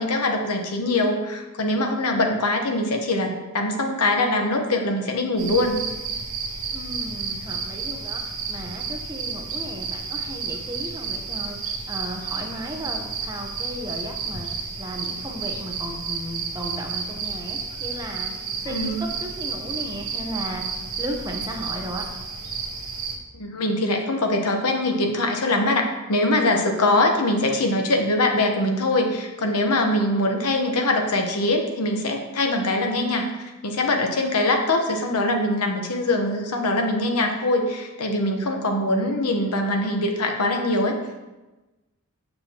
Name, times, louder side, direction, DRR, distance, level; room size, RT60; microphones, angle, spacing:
voice 1, 0.0-5.8 18.6-18.9 23.3-41.0, left 2 dB, 85° left, 3 dB, 1.0 m, -23 dB
sound 1, 5.4-23.2, right 5 dB, 70° right, 1.2 m, -31 dB
voice 2, 6.7-22.0, right 1 dB, 15° right, 1 dB, 0.8 m, -35 dB
7.5 x 6.6 x 2.9 m, 1.1 s
head